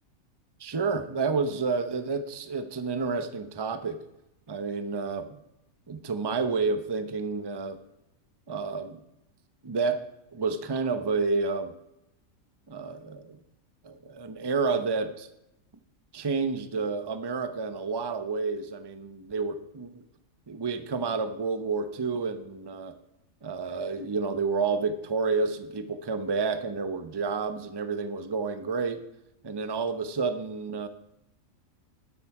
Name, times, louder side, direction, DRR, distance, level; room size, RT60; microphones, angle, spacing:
voice 1, 0.6-4.0 4.5-5.3 5.9-7.8 8.5-9.0 9.6-10.0 10.3-11.7 12.7-13.4 13.8-15.3 16.1-20.0 20.5-22.9 23.4-29.0 29.4-30.9, right 4 dB, 20° right, 10 dB, 0.8 m, -30 dB
12.5 x 12.0 x 4.8 m, 0.85 s
omnidirectional pair, 1.4 m